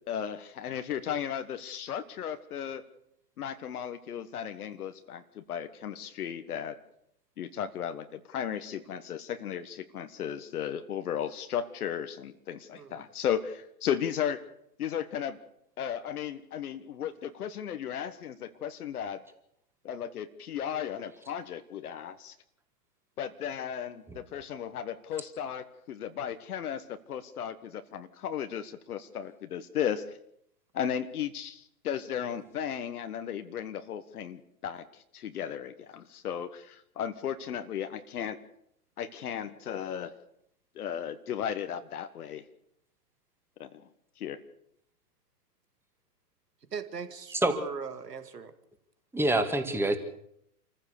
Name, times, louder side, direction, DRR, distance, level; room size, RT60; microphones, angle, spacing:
voice 1, 0.1-2.8 3.4-6.8 7.4-14.4 14.8-15.4 15.8-19.2 19.8-22.3 23.2-30.2 30.7-38.4 39.0-40.1 40.7-42.4 43.6-43.8 44.2-44.4, left 9 dB, 70° left, 9 dB, 1.5 m, -35 dB
voice 2, 46.7-48.5, right 6 dB, 85° right, 10 dB, 2.3 m, -39 dB
voice 3, 49.1-50.0, right 1 dB, 5° right, 7 dB, 2.0 m, -26 dB
27.0 x 15.0 x 6.7 m, 0.75 s
hypercardioid pair, 115°, 47 cm